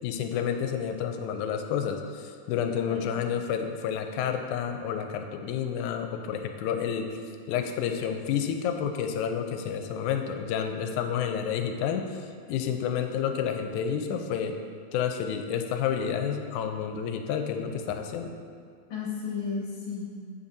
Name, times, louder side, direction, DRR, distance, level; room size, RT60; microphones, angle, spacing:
voice 1, 0.0-7.2 7.5-12.1 12.5-14.6 14.9-18.4, left 8 dB, 85° left, 6 dB, 2.0 m, -30 dB
voice 2, 2.7-3.3 18.9-20.3, left 5 dB, 55° left, -5 dB, 2.0 m, -34 dB
8.4 x 5.4 x 2.6 m, 2.3 s
omnidirectional pair, 3.4 m